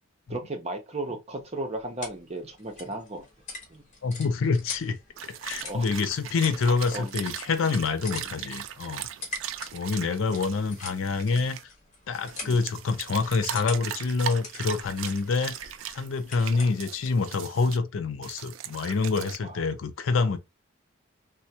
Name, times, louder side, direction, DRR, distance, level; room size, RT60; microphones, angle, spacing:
voice 1, 0.3-3.3 3.7-3.8 5.6-5.9 6.9-7.1 9.6-9.7 12.4-12.6 16.6-16.7 17.7-17.8 19.4-19.6, right 2 dB, 30° right, 0.7 m, -35 dB
sound 1, 1.4-17.2, left 3 dB, 35° left, 1.2 m, -45 dB
voice 2, 4.0-5.0 5.2-9.1 9.7-11.6 12.1-20.4, left 4 dB, 75° left, 0.4 m, -27 dB
sound 2, 5.2-11.6 12.1-17.8 18.2-19.4, right 10 dB, 70° right, 0.3 m, -39 dB
3.4 x 2.1 x 2.8 m
head